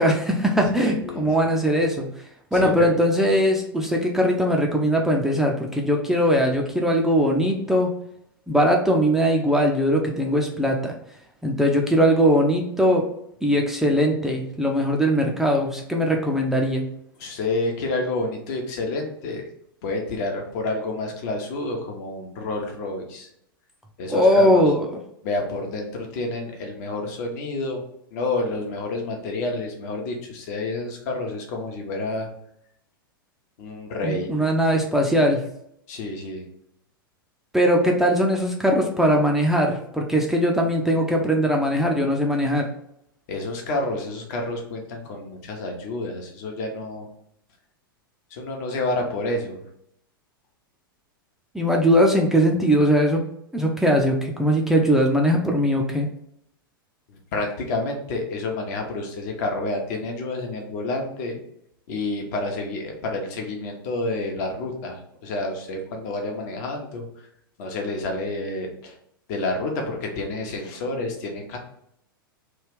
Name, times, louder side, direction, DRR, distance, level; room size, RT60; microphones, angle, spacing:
voice 1, 0.0-2.1 2.5-7.9 8.5-10.9 11.4-13.1 13.4-16.8 24.1-24.9 34.0-35.4 37.5-42.7 51.5-53.2 53.5-56.1, equal, 5° right, 0 dB, 0.4 m, -20 dB
voice 2, 0.8-1.4 2.5-3.0 17.2-19.4 19.8-23.3 24.0-24.7 25.2-27.8 28.1-32.3 33.6-34.3 35.9-36.5 43.3-47.1 48.3-49.6 57.1-61.4 61.9-67.3 67.6-69.0 69.3-71.6, left 2 dB, 45° left, 2 dB, 0.8 m, -29 dB
3.1 x 2.4 x 3.3 m, 0.74 s
figure-of-eight pair, 95°, 12 cm